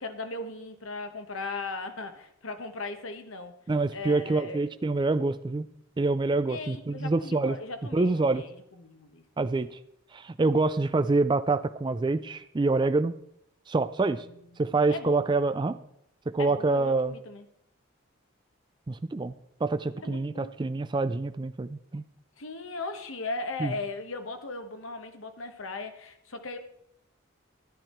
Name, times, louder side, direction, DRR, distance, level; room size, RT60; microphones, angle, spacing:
voice 1, 0.0-3.5 3.9-4.6 6.5-9.2 14.0-14.4 14.9-15.2 16.4-17.4 20.0-20.5 22.4-26.6, left 3 dB, 80° left, 7 dB, 1.3 m, -38 dB
voice 2, 3.7-5.7 6.0-7.6 7.9-8.4 9.4-9.8 10.1-13.1 13.7-14.2 14.6-15.8 16.3-17.1 18.9-19.3 19.6-22.0 23.6-23.7, right 3 dB, 20° right, 11 dB, 0.3 m, -26 dB
11.5 x 9.9 x 4.4 m, 0.75 s
head